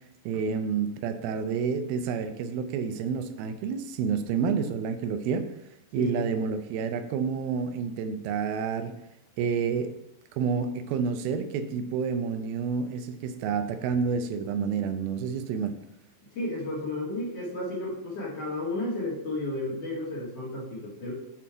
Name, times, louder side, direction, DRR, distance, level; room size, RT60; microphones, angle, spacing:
voice 1, 0.3-5.5 5.9-8.9 9.4-10.0 10.3-15.7, right 6 dB, 90° right, 9 dB, 2.5 m, -29 dB
voice 2, 16.3-21.1, left 2 dB, 50° left, -6 dB, 2.5 m, -32 dB
7.3 x 4.2 x 4.5 m, 0.82 s
omnidirectional pair, 4.2 m